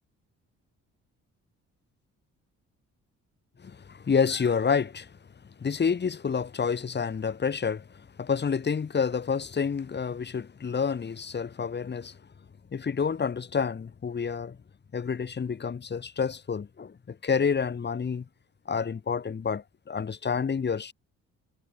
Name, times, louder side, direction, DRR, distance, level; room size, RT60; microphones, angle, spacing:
voice 1, 3.6-5.1 5.6-12.2 12.7-14.6 14.9-18.3 18.7-20.9, left 6 dB, 35° left, 1.8 m, -29 dB
cardioid pair, 90°, 30 cm